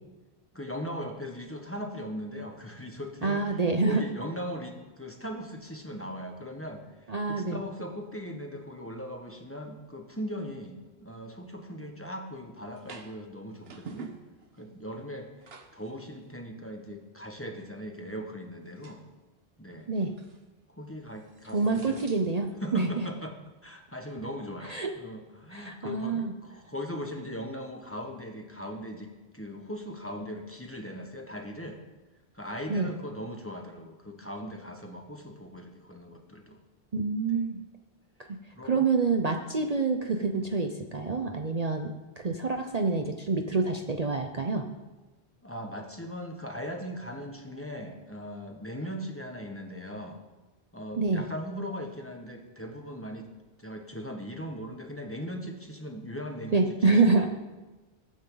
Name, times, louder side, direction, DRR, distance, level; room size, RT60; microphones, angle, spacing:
voice 1, 0.5-14.1 14.6-19.0 19.6-19.9 20.7-22.0 22.6-23.4 23.6-31.8 32.3-36.6 37.3-37.4 38.5-38.9 45.4-50.2 50.7-53.3 53.6-57.3, equal, 10° left, 3 dB, 1.5 m, -39 dB
voice 2, 3.2-4.0 7.1-7.6 19.9-20.1 21.5-22.9 24.7-24.9 25.5-26.3 32.7-32.9 36.9-37.6 38.6-44.7 51.0-51.2 56.5-57.3, right 3 dB, 40° right, 4 dB, 0.8 m, -27 dB
sound 1, 12.8-13.2 13.5-14.8 15.2-15.9 16.2-16.3 18.8-19.1 20.0-20.4 20.9-22.6 24.1-24.3, right 5 dB, 65° right, 1.3 m, -48 dB
21.5 x 9.3 x 4.0 m, 1.1 s
omnidirectional pair, 1.1 m